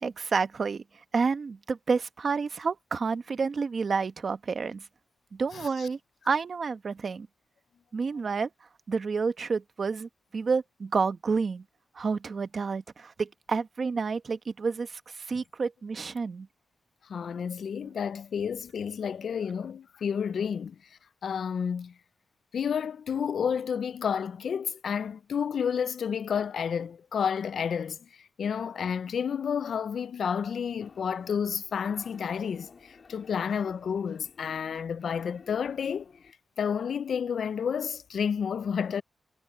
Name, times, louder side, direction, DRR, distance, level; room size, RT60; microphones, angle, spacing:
voice 1, 0.0-0.8 1.1-4.8 5.3-6.0 6.3-7.3 7.9-8.5 8.9-11.6 11.9-16.5, right 5 dB, 50° right, 1.1 m, -29 dB
voice 2, 5.5-5.9 17.1-20.8 21.2-21.9 22.5-28.0 28.4-32.7 33.1-36.1 36.6-39.0, left 7 dB, 75° left, 0.4 m, -30 dB
sound 1, 30.8-36.3, left 5 dB, 50° left, 2.6 m, -54 dB
wide cardioid pair, 135°, 0 cm